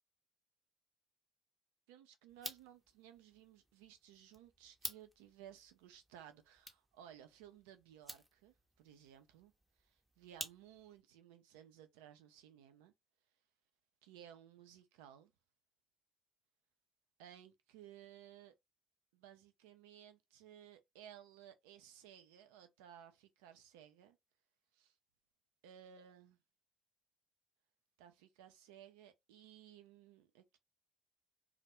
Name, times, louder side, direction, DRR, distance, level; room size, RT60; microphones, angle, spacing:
voice 1, 1.9-9.5 9.8-12.9 14.0-15.3 17.2-18.5 19.1-24.2 24.7-24.9 25.6-26.4 28.0-30.6, right 10 dB, 80° right, 0.4 m, -58 dB
sound 1, 2.3-11.0, right 1 dB, 10° right, 0.6 m, -53 dB
2.2 x 2.0 x 2.9 m
hypercardioid pair, 60°, 0 cm